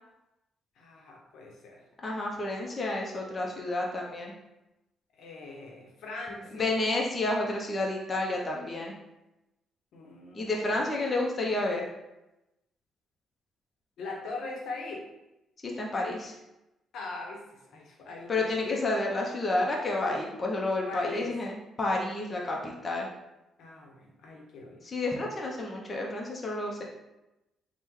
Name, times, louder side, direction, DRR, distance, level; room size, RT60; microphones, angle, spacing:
voice 1, 0.8-1.8 5.1-6.7 9.9-10.8 14.0-15.0 16.9-18.9 20.9-21.3 23.6-24.9, left 3 dB, 75° left, -1 dB, 0.7 m, -41 dB
voice 2, 2.0-4.3 6.5-8.9 10.3-11.8 15.6-16.3 18.3-23.1 24.8-26.8, left 2 dB, 35° left, -1 dB, 0.5 m, -30 dB
3.5 x 2.1 x 3.0 m, 0.95 s
cardioid pair, 90°, 0 cm